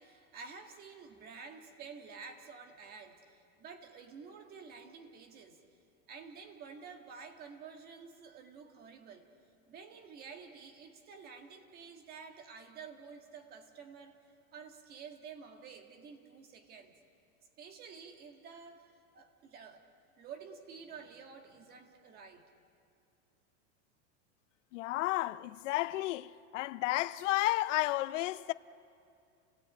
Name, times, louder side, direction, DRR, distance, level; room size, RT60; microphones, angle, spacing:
voice 1, 0.0-5.6 6.1-9.3 9.7-16.9 17.6-19.8 20.2-22.4, right 5 dB, 25° right, 1.7 m, -50 dB
voice 2, 24.7-28.5, left 18 dB, 80° left, 0.6 m, -32 dB
29.5 x 17.0 x 9.1 m
supercardioid pair, 180°, 37 cm